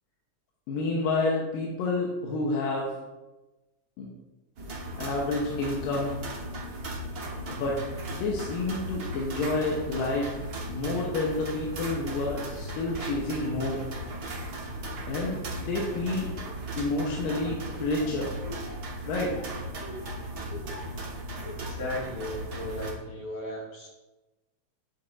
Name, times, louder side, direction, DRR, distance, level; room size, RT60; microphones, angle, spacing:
voice 1, 0.7-3.0 4.0-4.1 5.0-6.2 7.5-7.8 8.1-10.4 10.7-13.9 15.1-16.3 16.8-18.3 19.1-19.3, left 2 dB, 90° left, -3 dB, 2.8 m, -29 dB
sound 1, 4.6-22.9, right 1 dB, 70° right, 0.9 m, -37 dB
Laughter, 17.1-21.0 21.4-21.9, left 1 dB, 30° left, 3.1 m, -42 dB
voice 2, 21.6-23.9, left 1 dB, 55° left, -6 dB, 3.4 m, -36 dB
9.7 x 7.5 x 2.7 m, 1.1 s
omnidirectional pair, 3.9 m